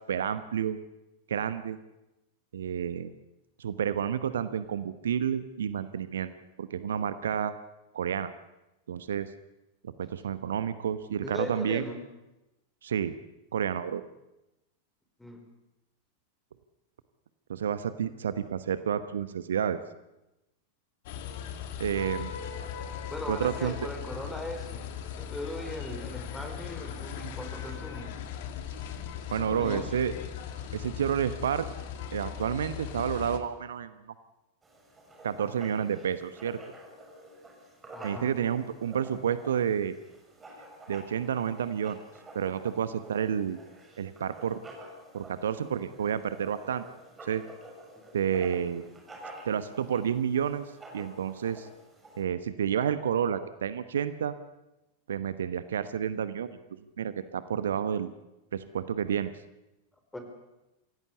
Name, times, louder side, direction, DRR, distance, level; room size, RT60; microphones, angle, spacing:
voice 1, 0.1-0.8 1.3-1.8 2.5-3.1 3.6-6.3 6.6-7.5 7.9-8.3 8.9-9.3 9.8-11.8 12.8-13.2 13.5-14.0 17.5-19.8 21.8-22.3 23.3-23.7 29.3-30.1 30.7-31.7 32.1-34.1 35.2-36.6 38.0-40.0 40.9-42.0 42.3-43.6 44.0-44.6 45.1-46.8 47.2-47.4 48.1-48.8 49.4-51.7 52.2-54.4 55.1-56.6 57.0-58.1 58.5-59.3, right 8 dB, 65° right, 13 dB, 1.0 m, -30 dB
voice 2, 11.2-12.0 15.2-15.4 23.1-24.9 25.2-28.1 29.2-29.9 37.9-38.3 47.9-48.0 60.1-60.2, left 1 dB, 5° left, 5 dB, 4.8 m, -39 dB
sound 1, 21.1-33.4, left 8 dB, 50° left, 2.3 m, -39 dB
Writing, 34.6-52.2, right 1 dB, 15° right, 6.7 m, -49 dB
26.0 x 16.5 x 8.4 m, 0.97 s
figure-of-eight pair, 90°, 0 cm